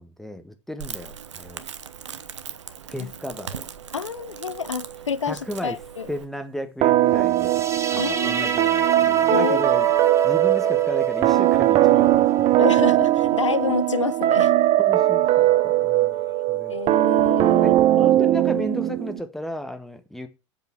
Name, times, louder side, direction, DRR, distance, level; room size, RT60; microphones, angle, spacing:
voice 1, 0.0-1.6 2.9-3.7 5.3-5.8 6.1-7.6 7.9-9.9 10.2-12.5 14.8-16.2 16.5-16.8 17.5-20.3, equal, ahead, 1.7 m, -34 dB
Crackle, 0.8-6.2, right 8 dB, 70° right, 1.0 m, -39 dB
voice 2, 3.9-6.1 8.0-8.5 9.3-9.6 12.6-14.5 16.7-17.7, left 6 dB, 80° left, 0.5 m, -28 dB
sound 1, 6.8-19.2, right 14 dB, 35° right, 0.9 m, -20 dB
sound 2, 7.3-14.4, right 6 dB, 20° right, 1.5 m, -30 dB
7.9 x 7.3 x 7.7 m
figure-of-eight pair, 80°, 15 cm